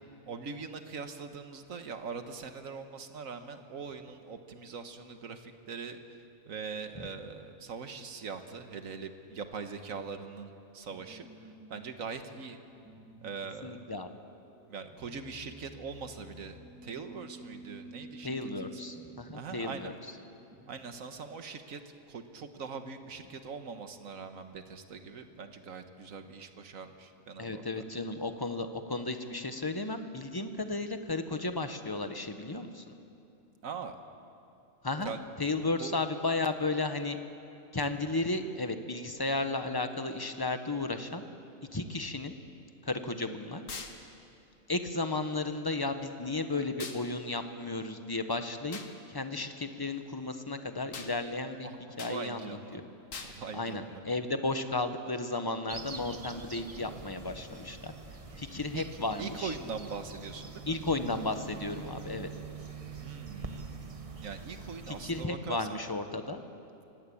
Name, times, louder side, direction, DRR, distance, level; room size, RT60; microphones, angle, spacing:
voice 1, 0.3-6.0 6.5-12.6 13.2-13.8 14.7-18.8 19.3-19.9 20.7-21.8 22.1-27.6 33.6-34.0 35.0-35.2 35.8-36.0 51.5-52.8 53.2-54.0 58.7-58.8 59.2-60.8 63.0-63.8 64.2-65.8, right 5 dB, 75° right, 7 dB, 1.7 m, -42 dB
sound 1, 10.9-21.7, right 1 dB, 10° right, 3.2 m, -52 dB
voice 2, 13.6-14.1 18.2-19.9 27.4-32.8 34.8-35.1 35.4-37.2 37.7-41.2 41.7-42.4 42.8-43.6 44.7-48.8 49.1-51.7 52.0-52.8 53.5-57.9 58.4-59.5 60.7-62.3 64.9-66.4, left 2 dB, 20° left, 8 dB, 1.0 m, -34 dB
sound 2, 43.7-44.0 46.8-47.0 48.7-48.9 50.9-51.1 52.0-52.2 53.1-53.4, left 4 dB, 70° left, 1.9 m, -41 dB
sound 3, 55.7-65.3, right 4 dB, 25° right, 1.2 m, -45 dB
25.0 x 17.5 x 8.6 m, 2.7 s
omnidirectional pair, 1.4 m